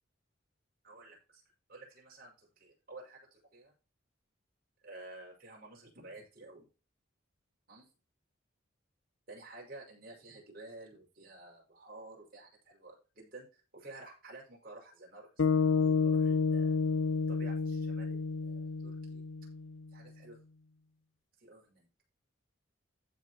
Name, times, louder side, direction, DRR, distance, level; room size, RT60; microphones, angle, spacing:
voice 1, 0.8-1.4 1.7-3.7 4.8-6.7 7.7-7.9 9.3-16.7 17.3-19.2 19.9-20.4 21.4-21.9, right 2 dB, 50° right, -2 dB, 6.0 m, -52 dB
sound 1, 15.4-19.8, left 5 dB, 80° left, 0.6 m, -30 dB
15.0 x 5.3 x 3.0 m, 0.33 s
head